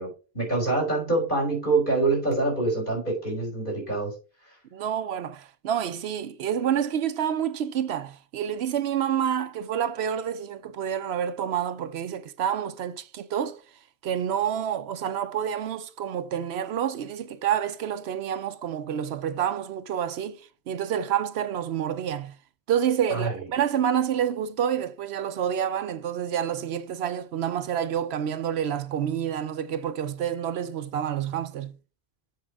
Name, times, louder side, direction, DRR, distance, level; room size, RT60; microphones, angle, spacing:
voice 1, 0.0-4.2 4.4-4.6 23.1-23.4, right 2 dB, 50° left, 4.0 m, -26 dB
voice 2, 4.7-13.6 14.0-22.4 22.7-31.8, right 9 dB, 80° right, 0.9 m, -28 dB
7.5 x 4.7 x 4.6 m
omnidirectional pair, 1.1 m